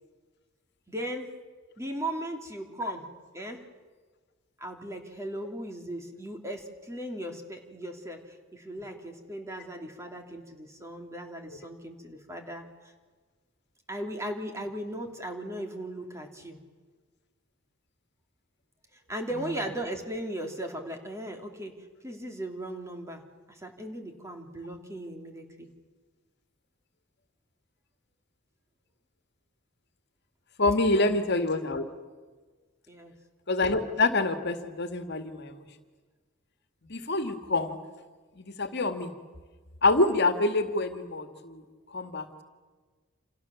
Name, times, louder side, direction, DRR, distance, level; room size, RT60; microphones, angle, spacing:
voice 1, 0.9-1.3 1.8-3.1 3.3-3.7 4.6-12.9 13.9-16.6 18.9-25.7 31.0-31.2 32.9-33.1, right 1 dB, 15° right, 3 dB, 3.1 m, -37 dB
voice 2, 30.6-31.8 33.5-35.6 36.9-37.8 38.4-39.1 39.8-41.6 41.9-42.3, left 2 dB, 55° left, 7 dB, 2.1 m, -26 dB
29.0 x 28.0 x 7.2 m, 1.4 s
head